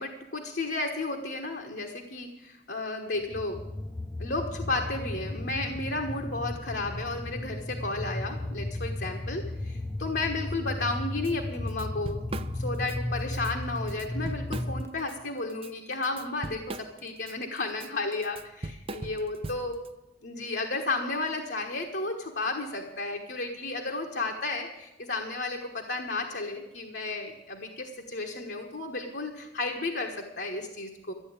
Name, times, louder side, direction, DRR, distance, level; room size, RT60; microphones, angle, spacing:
voice 1, 0.0-3.6 4.2-19.8 20.2-31.1, left 2 dB, 70° left, 2 dB, 1.3 m, -33 dB
sound 1, 3.2-14.9, left 1 dB, 15° left, 0.5 m, -35 dB
Drum kit / Drum, 11.2-11.3 11.7-13.0 13.3-13.5 13.9-15.1 15.5-19.9, right 2 dB, 30° right, 0.5 m, -40 dB
13.0 x 9.1 x 8.7 m, 0.98 s
head